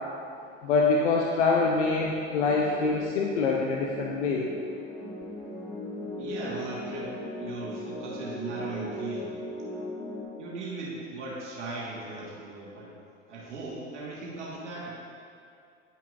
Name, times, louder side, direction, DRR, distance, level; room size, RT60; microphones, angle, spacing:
voice 1, 0.6-4.5, left 4 dB, 80° left, -1 dB, 0.7 m, -25 dB
sound 1, 2.4-10.2, left 1 dB, 10° left, 1.3 m, -38 dB
voice 2, 6.2-9.3 10.4-12.9 13.3-14.9, right 2 dB, 85° right, -6 dB, 1.6 m, -38 dB
10.0 x 5.9 x 2.5 m, 2.4 s
hypercardioid pair, 80°, 35 cm